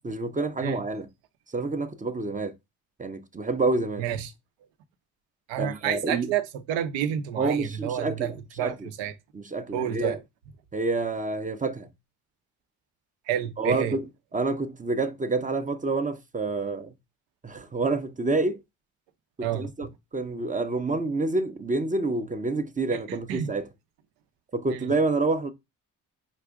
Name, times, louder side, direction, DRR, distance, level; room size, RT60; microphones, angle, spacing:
voice 1, 0.0-1.1 1.5-2.5 3.0-4.0 5.6-6.3 7.4-8.9 9.3-10.2 10.7-11.9 13.6-14.1 14.3-16.9 17.4-18.6 19.4-19.9 20.1-23.7 24.5-25.5, right 3 dB, 20° right, 0.5 m, -28 dB
voice 2, 4.0-4.3 5.5-8.3 8.6-9.1 9.7-10.2 13.3-13.9 19.4-19.6 23.3-23.5 24.7-24.8, right 10 dB, 75° right, 0.7 m, -29 dB
4.9 x 2.4 x 3.5 m
hypercardioid pair, 45°, 45 cm